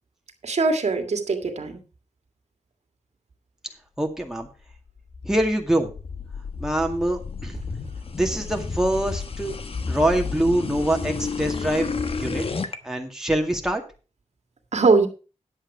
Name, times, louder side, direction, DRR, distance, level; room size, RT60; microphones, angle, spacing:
voice 1, 0.4-1.8 14.7-15.1, right 3 dB, 70° right, 5 dB, 1.9 m, -21 dB
voice 2, 4.0-4.5 5.2-5.9 6.6-7.6 8.1-9.5 9.9-11.9 12.2-12.5 12.8-13.8, right 1 dB, 5° right, 2 dB, 2.1 m, -24 dB
sound 1, 4.7-12.8, left 4 dB, 50° left, 1.2 m, -31 dB
10.0 x 8.2 x 4.7 m, 0.34 s
wide cardioid pair, 80°, 12 cm